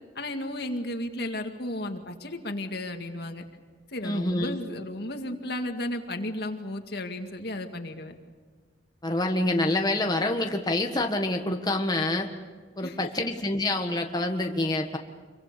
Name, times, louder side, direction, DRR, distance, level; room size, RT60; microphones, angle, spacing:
voice 1, 0.2-3.4 3.9-8.1 12.8-13.0, left 1 dB, 65° left, 5 dB, 2.1 m, -34 dB
voice 2, 4.0-4.6 9.0-12.3 12.8-15.0, left 2 dB, 25° left, 3 dB, 1.5 m, -27 dB
26.5 x 23.5 x 6.8 m, 1.4 s
head